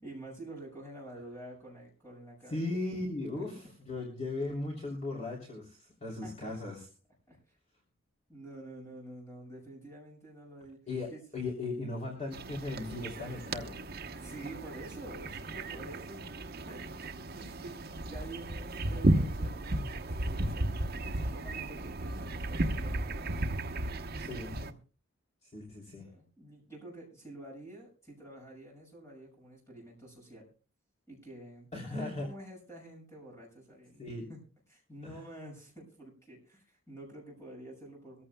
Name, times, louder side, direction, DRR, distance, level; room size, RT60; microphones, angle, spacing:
voice 1, 0.0-2.8 3.4-3.5 6.2-6.5 7.3-7.6 8.3-10.8 11.1-11.2 14.2-16.3 16.7-20.8 21.1-23.5 24.2-24.7 26.0-30.5 31.1-34.4 34.7-38.2, right 1 dB, 15° left, -1 dB, 6.3 m, -49 dB
voice 2, 2.5-6.9 10.9-13.8 24.2-24.5 25.4-26.1 31.7-32.3 34.0-34.3 35.0-35.2, left 2 dB, 30° left, -2 dB, 3.1 m, -37 dB
sound 1, 12.3-24.7, right 1 dB, 45° right, 0.9 m, -34 dB
22.5 x 14.5 x 2.2 m, 0.35 s
head